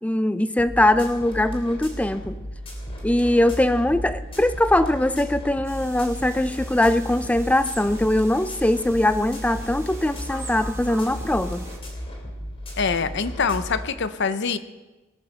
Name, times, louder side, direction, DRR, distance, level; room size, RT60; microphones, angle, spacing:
voice 1, 0.0-2.4 3.0-11.6, left 1 dB, 5° left, 12 dB, 0.4 m, -21 dB
sound 1, 0.6-13.9, equal, 30° left, 3.2 m, -35 dB
sound 2, 5.6-11.8, right 2 dB, 15° right, 1.4 m, -43 dB
voice 2, 12.8-14.6, left 5 dB, 60° left, 12 dB, 0.7 m, -24 dB
19.0 x 8.8 x 6.6 m, 1.2 s
head